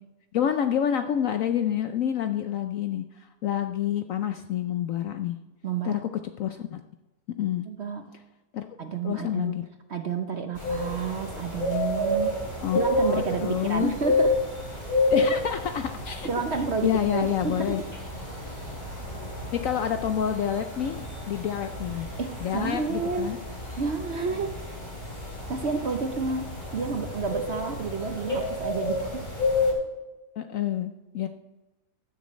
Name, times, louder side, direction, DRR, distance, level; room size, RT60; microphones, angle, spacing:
voice 1, 0.3-5.4 5.8-6.0 6.4-6.8 7.4-7.7 8.5-8.7 9.0-9.6 12.6-13.9 15.1-16.3 16.8-17.9 19.5-21.0 21.3-22.1 22.4-23.4 30.4-31.3, left 10 dB, 70° left, 8 dB, 0.8 m, -28 dB
voice 2, 5.6-6.0 7.7-8.0 8.8-9.5 9.9-12.4 12.7-14.4 16.2-17.8 22.2-23.3 23.8-24.6 25.5-29.3, right 5 dB, 50° right, 6 dB, 0.9 m, -30 dB
sound 1, 10.6-29.7, left 2 dB, 25° left, 2.9 m, -30 dB
15.5 x 10.5 x 3.1 m, 1.1 s
omnidirectional pair, 1.8 m